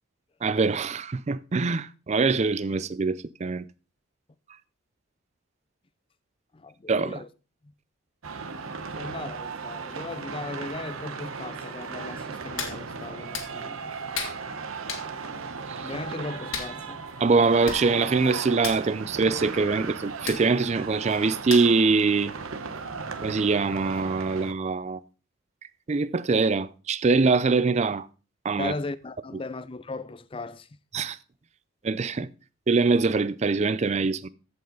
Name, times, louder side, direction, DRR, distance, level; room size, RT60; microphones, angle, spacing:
voice 1, 0.4-3.6 6.9-7.2 15.7-15.9 17.2-22.3 23.2-25.0 25.9-28.1 28.4-28.7 30.9-31.2 31.8-32.3 32.7-34.3, right 4 dB, 30° right, 0.4 m, -23 dB
voice 2, 6.5-7.3 7.6-7.7 9.0-13.9 15.8-17.0 28.6-30.7, left 3 dB, 25° left, 0.5 m, -37 dB
sound 1, 8.2-24.5, right 5 dB, 80° right, 1.0 m, -36 dB
Hands, 12.6-12.8 13.3-13.5 14.1-14.4 14.9-15.1 16.5-16.7 17.4-17.5 17.6-17.8 18.1-18.3 18.6-18.8 20.3-20.4 21.5-21.8 22.3-22.4, left 6 dB, 75° left, 1.9 m, -33 dB
14.5 x 5.4 x 3.8 m
head